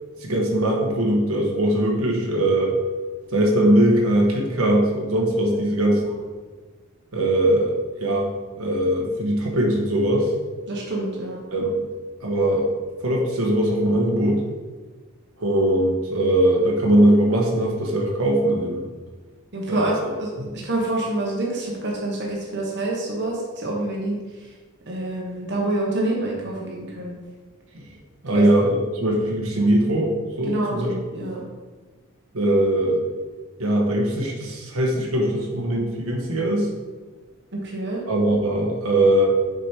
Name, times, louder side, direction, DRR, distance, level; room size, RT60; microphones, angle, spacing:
voice 1, 0.2-2.7 3.3-6.1 7.1-8.3 8.6-10.3 11.5-11.7 12.2-12.7 13.0-14.4 15.4-18.8 19.7-20.1 20.4-20.5 27.7-27.8 28.2-30.9 32.3-33.0 33.6-36.7 38.1-39.3, right 1 dB, 75° right, -1 dB, 1.4 m, -21 dB
voice 2, 10.7-11.4 19.5-24.2 24.9-27.2 28.3-28.5 30.5-31.4 37.5-38.0, right 2 dB, 55° right, -2 dB, 1.2 m, -27 dB
6.5 x 5.2 x 4.5 m, 1.4 s
head